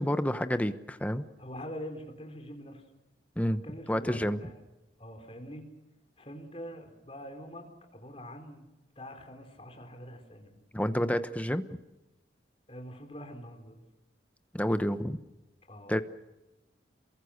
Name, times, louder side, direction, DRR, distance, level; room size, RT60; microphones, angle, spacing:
voice 1, 0.0-1.2 3.4-3.6 3.9-4.4 10.7-11.8 14.5-15.2 15.9-16.0, equal, 10° left, 10 dB, 1.0 m, -29 dB
voice 2, 1.4-2.8 3.6-4.6 5.0-5.7 6.2-7.6 7.9-8.7 9.0-10.5 12.7-13.8 15.7-15.9, equal, 30° left, 4 dB, 4.3 m, -44 dB
28.5 x 23.0 x 6.6 m, 1.0 s
head